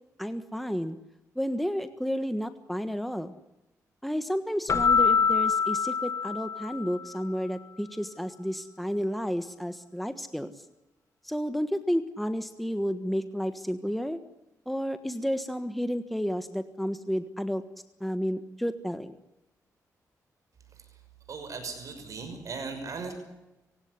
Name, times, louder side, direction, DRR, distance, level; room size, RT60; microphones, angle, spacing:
voice 1, 0.2-1.0 1.4-3.3 4.0-10.5 11.2-14.2 14.7-17.6 18.0-19.1, equal, ahead, 10 dB, 1.4 m, -31 dB
Keyboard (musical), 4.7-7.1, left 6 dB, 50° left, 1.2 m, -25 dB
voice 2, 21.3-23.1, right 4 dB, 60° right, 6 dB, 6.1 m, -37 dB
26.0 x 16.5 x 9.8 m, 0.96 s
cardioid pair, 100°, 6 cm